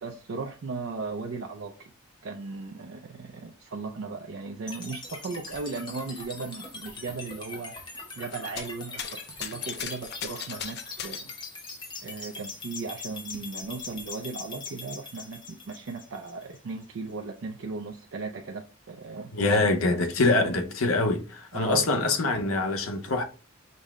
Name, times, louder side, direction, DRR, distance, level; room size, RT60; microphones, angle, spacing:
voice 1, 0.0-1.9 2.2-7.8 8.2-11.3 12.0-19.6 21.5-22.0, right 4 dB, 65° right, 0.4 m, -37 dB
sound 1, 4.7-16.7, left 3 dB, 20° left, 0.8 m, -42 dB
sound 2, 8.3-8.7 9.0-11.4 12.5-12.6 13.0-14.0 14.9-15.0, left 9 dB, 50° left, 0.4 m, -38 dB
voice 2, 19.3-23.2, left 2 dB, 80° left, 0.8 m, -24 dB
5.3 x 2.1 x 3.5 m
head